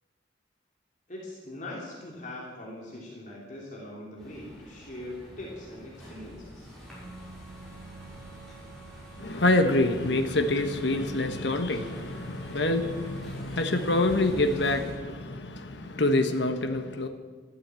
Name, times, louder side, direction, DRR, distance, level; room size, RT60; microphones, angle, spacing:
voice 1, 1.1-6.7, left 1 dB, 40° left, 3.1 m, -41 dB
sound 1, 4.2-14.9, right 1 dB, ahead, 6.5 m, -45 dB
voice 2, 9.2-17.1, left 2 dB, 70° left, 1.3 m, -26 dB
13.5 x 12.5 x 8.3 m
head